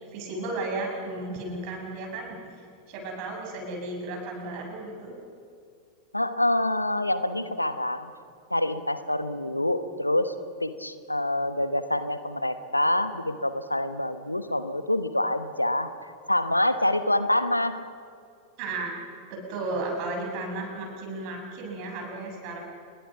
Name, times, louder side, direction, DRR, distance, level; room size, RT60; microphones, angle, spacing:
voice 1, 0.0-5.1 18.6-18.9 19.3-22.6, right 2 dB, 45° right, 1 dB, 7.5 m, -34 dB
voice 2, 6.1-8.1 8.5-10.3 10.6-15.9 16.3-17.8, left 1 dB, 85° left, 11 dB, 1.2 m, -26 dB
29.0 x 22.0 x 6.0 m, 2.3 s
figure-of-eight pair, 90°, 0 cm